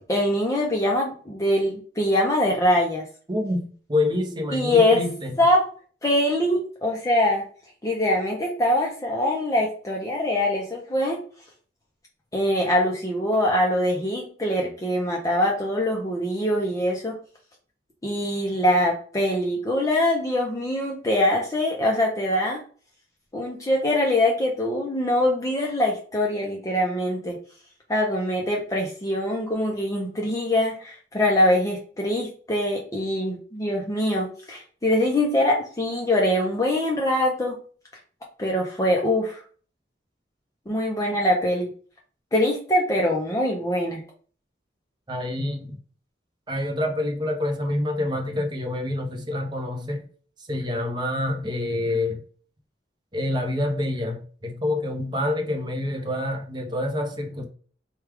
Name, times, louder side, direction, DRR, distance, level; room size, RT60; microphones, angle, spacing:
voice 1, 0.1-3.0 4.5-5.0 5.4-5.7 6.0-7.4 7.8-11.2 12.3-17.1 18.0-22.6 23.3-27.4 27.9-37.6 38.4-39.4 40.7-41.7 42.3-44.0, left 1 dB, 20° left, 0.6 m, -23 dB
voice 2, 3.3-5.4 45.1-45.8 46.5-50.1 50.5-52.2 53.1-57.5, left 1 dB, 25° right, 0.7 m, -27 dB
4.6 x 2.3 x 3.4 m
head